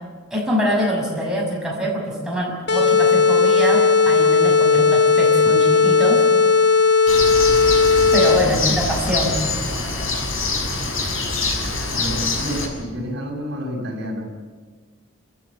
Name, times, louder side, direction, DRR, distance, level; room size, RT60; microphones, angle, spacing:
voice 1, 0.3-6.2 8.1-9.4, equal, 5° right, -3 dB, 6.4 m, -24 dB
sound 1, 2.7-8.6, left 4 dB, 55° left, 1.3 m, -16 dB
Bird, 7.1-12.7, left 3 dB, 75° left, 6.4 m, -24 dB
voice 2, 8.4-8.7 12.0-14.3, equal, 55° right, 0 dB, 6.3 m, -29 dB
28.0 x 15.0 x 8.4 m, 1.5 s
head